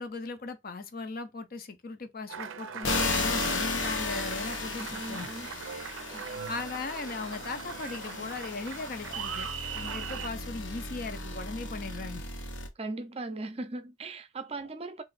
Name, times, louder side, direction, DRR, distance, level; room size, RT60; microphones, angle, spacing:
voice 1, 0.0-5.3 6.5-12.3, left 3 dB, 50° left, 0.6 m, -38 dB
Applause, 2.3-10.3, right 7 dB, 90° right, 0.4 m, -40 dB
sound 1, 2.8-12.7, left 3 dB, 75° left, 0.8 m, -35 dB
voice 2, 4.8-5.5 6.1-6.4 12.8-15.0, right 2 dB, 30° right, 0.5 m, -39 dB
2.9 x 2.5 x 4.0 m
head